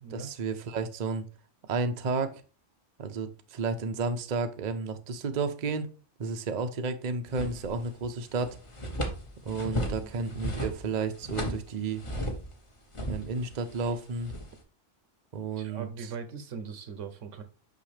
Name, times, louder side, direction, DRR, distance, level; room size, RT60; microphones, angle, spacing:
voice 1, 0.1-1.3 1.7-2.3 3.0-5.9 6.2-8.6 9.4-12.0 13.1-14.3 15.3-16.1, right 4 dB, 45° right, 0.7 m, -32 dB
sound 1, 7.3-8.1 8.3-12.6 12.9-14.6, equal, 25° left, 1.0 m, -35 dB
voice 2, 15.6-17.4, right 6 dB, 80° right, 1.3 m, -40 dB
6.1 x 5.9 x 3.3 m
omnidirectional pair, 1.3 m